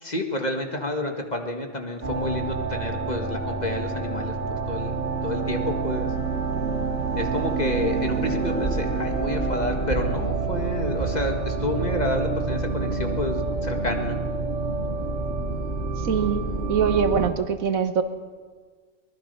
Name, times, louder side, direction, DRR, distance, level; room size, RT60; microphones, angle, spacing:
voice 1, 0.0-5.0 5.2-6.1 7.1-14.2, left 1 dB, 30° left, 3 dB, 1.9 m, -29 dB
sound 1, 2.0-17.3, right 4 dB, 45° right, 3.0 m, -27 dB
voice 2, 16.0-16.4 16.7-18.0, right 7 dB, 80° right, 9 dB, 1.7 m, -23 dB
23.5 x 20.0 x 5.6 m, 1.5 s
omnidirectional pair, 1.4 m